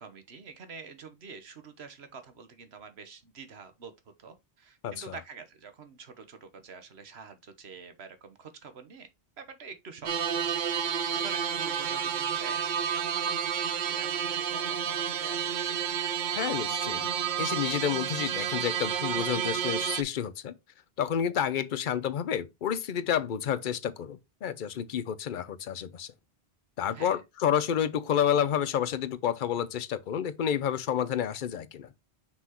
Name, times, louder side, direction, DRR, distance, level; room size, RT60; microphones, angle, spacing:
voice 1, 0.0-9.1 9.4-10.6 10.9-15.8 26.9-27.2, right 5 dB, 80° right, 1.4 m, -47 dB
sound 1, 10.1-20.0, right 8 dB, 55° right, 0.6 m, -30 dB
voice 2, 16.4-17.1 17.4-20.5 21.0-26.1 26.8-31.9, left 9 dB, 55° left, 0.8 m, -29 dB
5.9 x 5.8 x 2.9 m
omnidirectional pair, 1.1 m